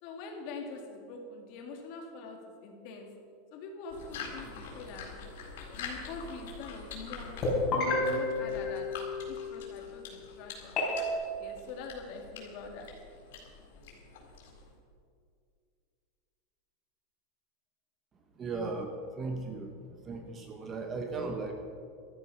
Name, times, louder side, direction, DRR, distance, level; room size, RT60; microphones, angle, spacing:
voice 1, 0.0-3.1 3.5-5.1 5.7-8.9 9.3-10.8 11.4-12.9, left 4 dB, 40° left, 2 dB, 2.2 m, -44 dB
sound 1, 3.9-14.8, left 5 dB, 70° left, 4.1 m, -46 dB
sound 2, 7.4-9.6 10.8-11.1, left 2 dB, 25° left, 4.1 m, -30 dB
voice 2, 18.4-21.5, right 3 dB, 15° right, 5 dB, 0.9 m, -37 dB
13.5 x 13.0 x 5.6 m, 2.3 s
supercardioid pair, 180°, 0 cm